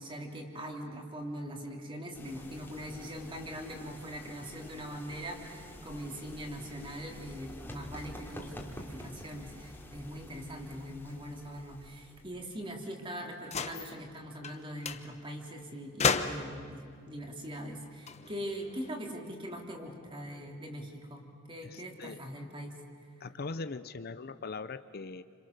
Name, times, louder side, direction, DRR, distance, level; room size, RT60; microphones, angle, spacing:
voice 1, 0.0-22.7, equal, 25° right, 1 dB, 3.2 m, -42 dB
sound 1, 2.1-12.5, left 1 dB, 10° left, 2.8 m, -49 dB
sound 2, 13.4-13.9 14.4-14.6 14.8-15.0 16.0-16.6 17.9-18.9, left 5 dB, 35° left, 1.0 m, -32 dB
voice 2, 21.6-22.3 23.2-25.2, left 3 dB, 50° left, 12 dB, 0.7 m, -41 dB
29.5 x 27.0 x 6.7 m, 2.3 s
head